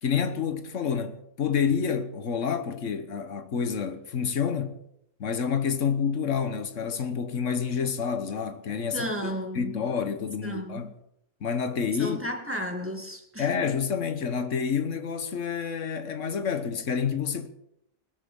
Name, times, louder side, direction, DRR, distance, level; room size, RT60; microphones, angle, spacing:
voice 1, 0.0-4.8 5.2-10.9 11.4-12.2 13.4-17.5, left 6 dB, 80° left, 1.5 m, -28 dB
voice 2, 8.9-9.8 10.4-10.8 12.0-13.5, equal, 10° right, 2.0 m, -33 dB
21.0 x 13.5 x 3.8 m
omnidirectional pair, 1.3 m